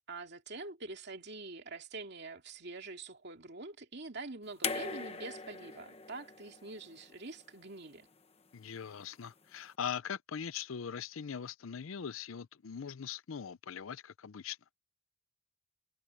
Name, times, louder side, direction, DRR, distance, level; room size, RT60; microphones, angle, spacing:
voice 1, 0.0-8.1, right 3 dB, 55° right, 2.7 m, -45 dB
sound 1, 4.6-7.8 9.0-9.1, left 4 dB, 30° left, 1.2 m, -41 dB
voice 2, 8.5-14.6, left 7 dB, 75° left, 0.5 m, -41 dB
head